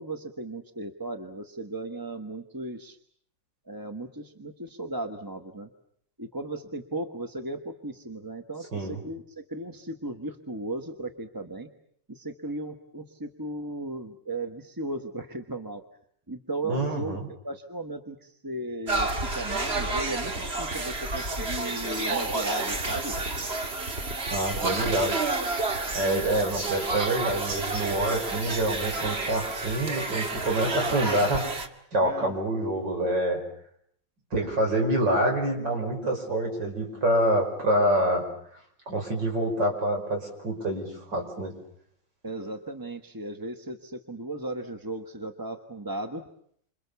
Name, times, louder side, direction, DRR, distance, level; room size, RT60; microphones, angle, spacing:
voice 1, 0.0-3.0 3.7-5.7 6.2-11.7 12.1-15.8 16.3-17.2 17.4-19.1 19.3-23.1 24.5-24.8 26.0-26.2 32.0-32.3 34.7-34.8 42.2-46.2, right 2 dB, 15° right, 6 dB, 1.2 m, -36 dB
voice 2, 16.6-17.3 24.3-25.2 25.9-31.6 31.9-33.4 34.3-38.2 38.9-41.5, right 1 dB, 85° right, 2 dB, 6.3 m, -26 dB
sound 1, 18.9-31.7, right 3 dB, 35° right, 2.1 m, -30 dB
28.5 x 27.0 x 7.0 m, 0.67 s
omnidirectional pair, 1.9 m